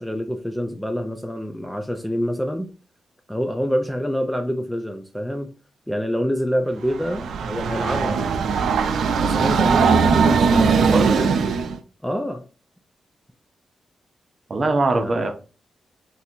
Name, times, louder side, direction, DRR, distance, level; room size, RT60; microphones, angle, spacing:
voice 1, 0.0-2.7 3.3-5.5 5.9-8.2 9.2-11.4 12.0-12.4 14.9-15.3, equal, 5° left, 0.3 m, -27 dB
Train, 6.8-11.8, right 5 dB, 85° right, 0.3 m, -19 dB
voice 2, 10.9-11.2 14.5-15.3, right 3 dB, 35° right, 0.6 m, -21 dB
2.7 x 2.5 x 4.2 m
wide cardioid pair, 125°, 0 cm